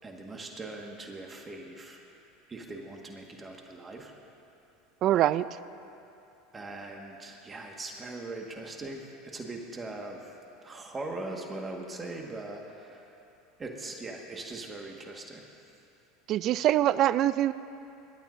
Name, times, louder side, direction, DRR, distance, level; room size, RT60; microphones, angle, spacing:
voice 1, 0.0-2.0 2.5-4.1 6.5-10.2 10.6-13.0 13.6-15.4, right 2 dB, 25° right, 1 dB, 1.7 m, -40 dB
voice 2, 5.0-5.4 16.3-17.5, right 13 dB, 50° right, 16 dB, 0.4 m, -24 dB
26.0 x 12.5 x 2.7 m, 2.8 s
hypercardioid pair, 90°, 0 cm